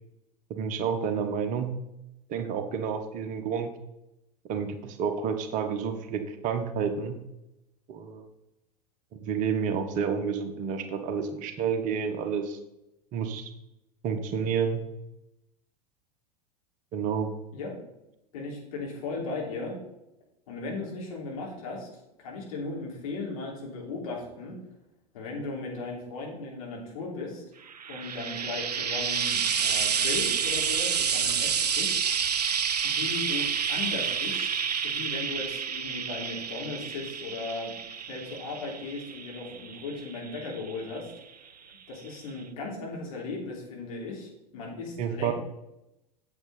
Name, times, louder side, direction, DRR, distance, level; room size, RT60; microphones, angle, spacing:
voice 1, 0.5-1.8 2.3-3.7 4.5-7.2 7.9-8.2 9.1-12.6 13.1-13.5 14.0-14.8 16.9-17.3 45.0-45.3, right 6 dB, 40° right, 8 dB, 1.1 m, -30 dB
voice 2, 18.3-19.7 20.5-21.9 22.2-24.6 25.1-27.4 27.9-32.0 32.8-37.7 38.1-41.0 41.9-45.3, left 3 dB, 60° left, -2 dB, 3.3 m, -37 dB
Frying (food), 27.7-41.1 42.1-42.2, right 7 dB, 80° right, 0.5 m, -29 dB
8.5 x 7.7 x 4.2 m, 0.89 s
figure-of-eight pair, 85°, 20 cm